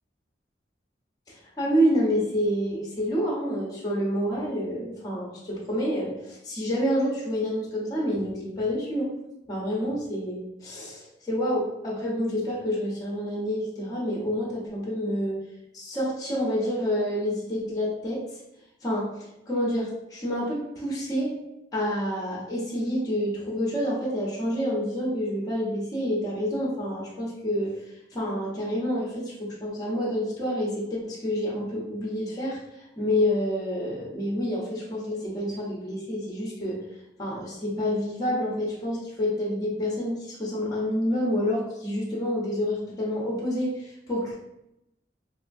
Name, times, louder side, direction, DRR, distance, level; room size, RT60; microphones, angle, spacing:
voice 1, 1.3-9.1 9.5-15.4 15.7-18.2 18.8-19.1 19.5-21.4 21.7-27.8 28.1-32.6 33.0-36.8 37.2-44.4, equal, 20° left, -5 dB, 0.7 m, -28 dB
3.2 x 2.8 x 2.5 m, 0.85 s
head